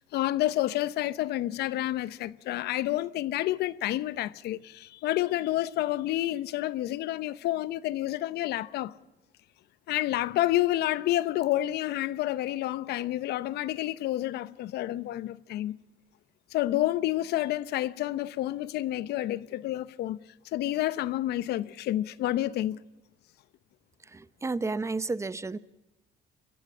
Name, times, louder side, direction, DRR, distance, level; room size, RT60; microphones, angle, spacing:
voice 1, 0.0-8.9 9.9-15.8 16.5-20.2 20.5-22.8, left 15 dB, 75° left, 0.8 m, -29 dB
voice 2, 24.0-25.6, right 3 dB, 15° right, 0.7 m, -32 dB
24.5 x 15.0 x 7.4 m
cardioid pair, 110°, 17 cm